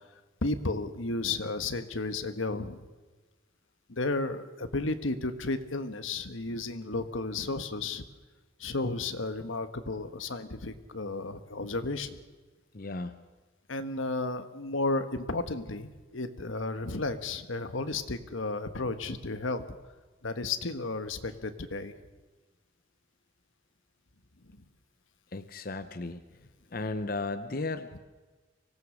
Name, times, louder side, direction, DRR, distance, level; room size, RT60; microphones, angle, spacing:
voice 1, 0.4-2.8 3.9-8.0 8.6-12.2 13.7-19.6 20.2-21.9 27.9-28.0, left 3 dB, 85° left, 9 dB, 1.4 m, -33 dB
voice 2, 12.7-13.2 25.3-26.2 26.7-27.9, left 3 dB, 45° left, 10 dB, 0.8 m, -34 dB
24.5 x 18.0 x 6.4 m, 1.3 s
head